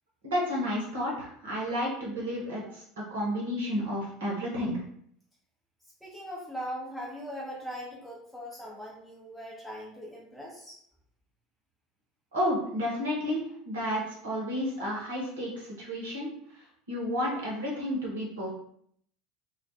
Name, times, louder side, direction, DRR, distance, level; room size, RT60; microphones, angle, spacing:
voice 1, 0.2-4.8 12.3-16.3 16.9-18.5, equal, 70° right, -3 dB, 0.9 m, -31 dB
voice 2, 6.0-10.8, equal, ahead, -6 dB, 0.7 m, -40 dB
2.3 x 2.2 x 2.7 m, 0.65 s
figure-of-eight pair, 70°, 0 cm